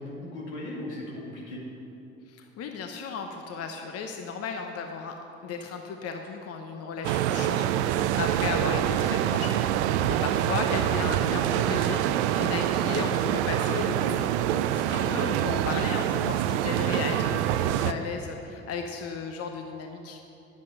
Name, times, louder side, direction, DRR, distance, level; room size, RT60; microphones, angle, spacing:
voice 1, 0.0-1.6 14.7-15.1, left 1 dB, 85° left, -4 dB, 2.5 m, -38 dB
voice 2, 2.3-20.2, left 5 dB, 45° left, 4 dB, 0.8 m, -35 dB
sound 1, 7.0-17.9, right 11 dB, 75° right, 0.5 m, -26 dB
10.0 x 8.4 x 5.4 m, 2.8 s
hypercardioid pair, 60°, 34 cm